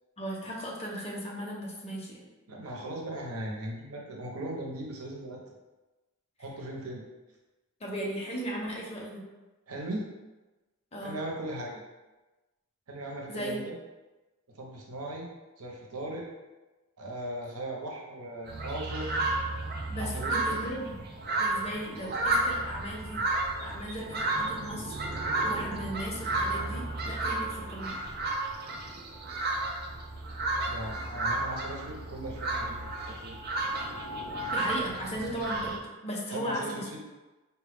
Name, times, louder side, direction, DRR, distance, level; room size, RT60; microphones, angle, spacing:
voice 1, 0.2-2.2 7.8-9.2 10.9-11.2 13.3-13.6 19.9-21.0 21.4-23.2 23.6-25.0 25.4-28.0 34.5-35.7 36.0-36.9, equal, 30° left, -3 dB, 0.7 m, -36 dB
voice 2, 2.5-5.4 6.4-7.0 9.7-10.0 11.0-11.8 12.9-13.7 14.5-15.3 15.6-16.3 17.0-19.1 20.0-20.6 30.6-33.4 36.3-37.0, right 1 dB, 85° right, -1 dB, 0.8 m, -38 dB
sound 1, 18.5-35.8, right 2 dB, 45° right, 0.5 m, -32 dB
4.3 x 2.3 x 3.4 m, 1.1 s
head